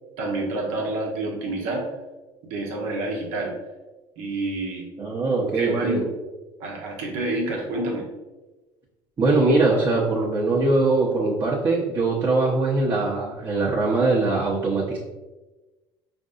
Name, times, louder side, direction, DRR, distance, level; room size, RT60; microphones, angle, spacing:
voice 1, 0.2-1.9 2.4-3.5 4.2-4.9 5.2-6.1 6.6-8.0, right 2 dB, 75° right, 0 dB, 1.0 m, -28 dB
voice 2, 5.0-6.0 9.2-15.0, right 3 dB, 35° right, -6 dB, 1.0 m, -22 dB
5.2 x 2.6 x 2.5 m, 1.1 s
hypercardioid pair, 70°, 12 cm